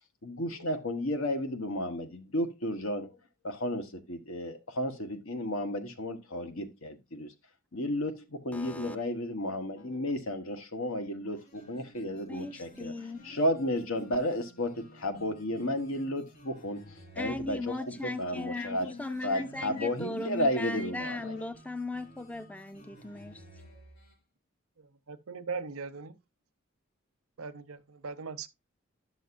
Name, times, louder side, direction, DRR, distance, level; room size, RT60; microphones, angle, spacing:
voice 1, 0.2-3.1 3.4-7.3 7.7-12.9 13.2-21.4, left 1 dB, 80° left, 1.4 m, -33 dB
voice 2, 8.5-9.0 12.1-13.2 17.2-23.4, left 2 dB, 5° left, 0.4 m, -38 dB
sound 1, 11.4-24.2, right 1 dB, 45° left, 4.6 m, -55 dB
voice 3, 24.8-26.2 27.4-28.5, right 5 dB, 90° right, 0.7 m, -40 dB
11.0 x 6.4 x 2.5 m
head